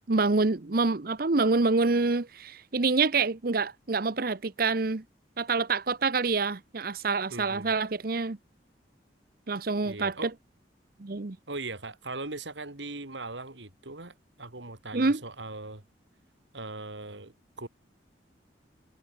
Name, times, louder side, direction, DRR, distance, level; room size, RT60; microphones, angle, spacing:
voice 1, 0.1-5.0 5.4-8.4 9.5-10.3 11.0-11.4 14.9-15.2, right 3 dB, 55° right, 0.9 m, -26 dB
voice 2, 7.3-7.7 9.8-10.3 11.5-15.8 16.5-17.7, right 2 dB, 80° right, 3.5 m, -40 dB
head